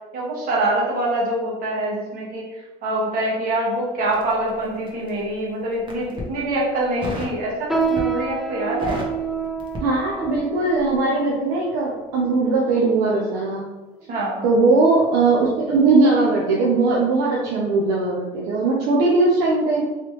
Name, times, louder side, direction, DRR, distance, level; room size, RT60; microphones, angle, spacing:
voice 1, 0.1-2.5 2.8-9.0 14.1-14.4, right 1 dB, 60° right, -5 dB, 1.5 m, -24 dB
Crackle, 4.1-5.2 5.7-6.3 7.0-7.4 7.8-8.3 8.6-10.5 10.7-11.0, equal, 30° right, 1.0 m, -33 dB
sound 1, 7.7-13.4 14.0-14.2 14.9-15.2 15.6-15.8 16.5-16.6, right 5 dB, ahead, 0.4 m, -29 dB
voice 2, 9.8-13.6 14.4-19.8, right 3 dB, 85° right, -3 dB, 0.6 m, -19 dB
3.2 x 3.0 x 3.0 m, 1.2 s
cardioid pair, 100°, 16 cm